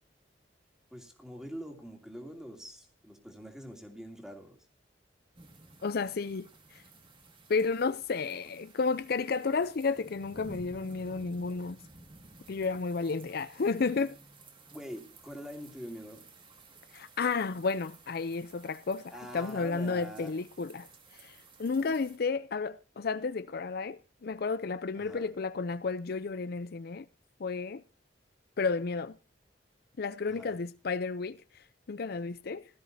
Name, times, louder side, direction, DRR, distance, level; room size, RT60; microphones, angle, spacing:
voice 1, 0.9-4.6 14.7-16.2 19.1-20.3 25.0-25.3 30.3-30.5, equal, 5° right, 2.7 m, -44 dB
sound 1, 5.3-22.2, right 3 dB, 30° right, 1.9 m, -55 dB
voice 2, 5.8-6.8 7.5-11.8 12.5-14.2 16.9-20.9 21.1-27.1 27.4-27.8 28.6-29.1 30.0-32.6, left 4 dB, 60° left, 0.5 m, -32 dB
17.0 x 13.5 x 2.7 m
head